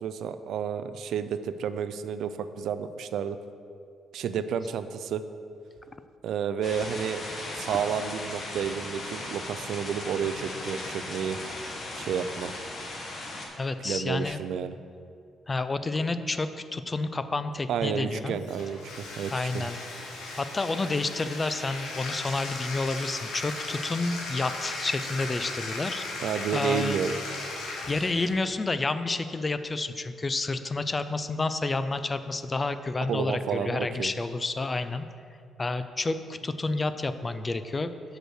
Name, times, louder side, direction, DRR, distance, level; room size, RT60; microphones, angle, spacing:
voice 1, 0.0-3.4 4.1-5.2 6.2-7.2 7.5-11.4 11.9-12.6 13.8-14.7 17.7-19.7 26.2-27.1 33.1-34.1, right 7 dB, 75° right, 11 dB, 0.3 m, -31 dB
sound 1, 6.6-13.5, left 2 dB, 50° left, 1.3 m, -37 dB
voice 2, 13.6-14.4 15.5-18.4 19.3-19.8 20.3-26.1 26.5-27.0 27.9-35.1 35.6-38.2, left 3 dB, 25° left, 11 dB, 0.4 m, -30 dB
Bathtub (filling or washing), 18.4-28.4, left 2 dB, 85° left, 1.3 m, -37 dB
6.0 x 5.2 x 6.4 m, 2.4 s
cardioid pair, 90°, 0 cm